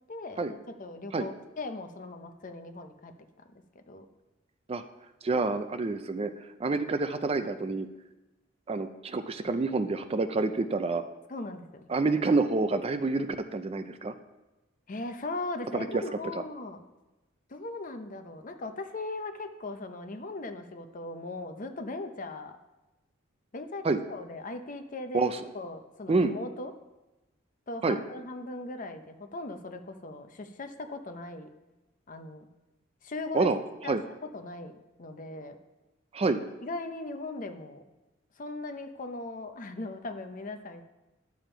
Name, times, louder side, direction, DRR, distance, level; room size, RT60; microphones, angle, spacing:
voice 1, 0.1-3.1 3.5-4.1 11.3-11.9 14.9-16.8 17.5-22.6 23.5-26.7 27.7-31.5 32.1-32.5 33.0-33.5 33.8-34.0 34.3-34.7 35.0-35.6 36.6-37.8 38.4-40.8, left 2 dB, 45° left, 7 dB, 0.7 m, -39 dB
voice 2, 5.2-7.9 8.7-11.0 11.9-14.1 15.7-15.9 16.3-16.4 23.8-24.0 25.1-25.5 26.1-26.3 27.8-28.0 33.3-33.6 33.9-34.0 36.1-36.4, right 3 dB, 30° right, 10 dB, 0.4 m, -28 dB
10.5 x 7.0 x 4.5 m, 1.0 s
head